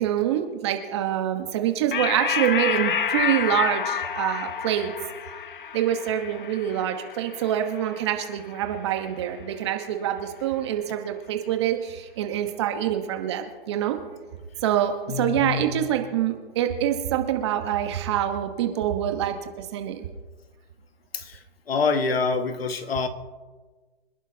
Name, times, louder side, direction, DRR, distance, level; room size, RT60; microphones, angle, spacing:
voice 1, 0.0-4.9 5.7-14.0 14.6-20.0, right 11 dB, 25° right, 5 dB, 1.2 m, -26 dB
sound 1, 1.9-8.8, left 7 dB, 55° left, 1.2 m, -29 dB
voice 2, 15.1-15.9 21.1-21.4 21.7-23.1, left 4 dB, 70° left, 7 dB, 1.8 m, -26 dB
25.5 x 11.0 x 2.8 m, 1.3 s
hypercardioid pair, 160°, 31 cm